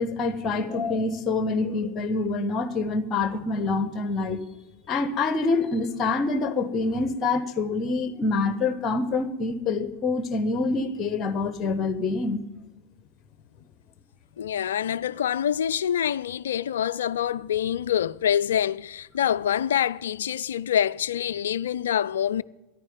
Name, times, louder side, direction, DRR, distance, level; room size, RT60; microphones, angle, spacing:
voice 1, 0.0-4.4 4.9-12.4, left 3 dB, 30° left, 1.2 m, -26 dB
voice 2, 14.4-22.4, left 9 dB, 60° left, 0.3 m, -26 dB
11.0 x 9.7 x 9.3 m
figure-of-eight pair, 90°, 0 cm